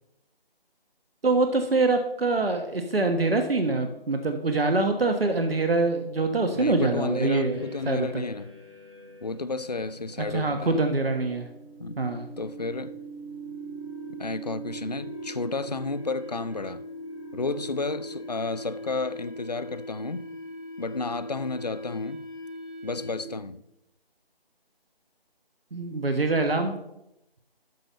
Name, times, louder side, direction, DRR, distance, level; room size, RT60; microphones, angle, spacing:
voice 1, 1.2-8.2 10.3-11.5 12.0-12.3 25.7-26.8, right 3 dB, 70° right, 1.3 m, -25 dB
voice 2, 6.5-8.6 9.2-10.8 11.8-12.1 12.4-13.0 14.2-16.8 17.3-20.3 20.8-22.2 22.8-23.6, left 3 dB, 45° left, 0.4 m, -32 dB
sound 1, 7.5-23.4, right 1 dB, 30° right, 3.0 m, -41 dB
12.0 x 5.3 x 4.2 m
figure-of-eight pair, 165°, 30 cm